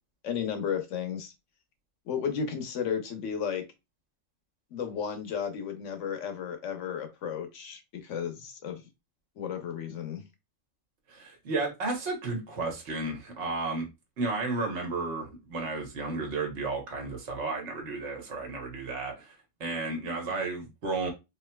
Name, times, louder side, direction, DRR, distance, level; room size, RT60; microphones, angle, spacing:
voice 1, 0.2-1.3 2.1-3.6 4.7-8.8 9.4-10.3 20.3-20.4, left 7 dB, 65° left, 6 dB, 1.1 m, -33 dB
voice 2, 11.1-13.9 14.2-19.3 19.6-21.1, right 3 dB, 55° right, 2 dB, 1.3 m, -33 dB
4.5 x 2.8 x 2.2 m, 0.24 s
omnidirectional pair, 1.4 m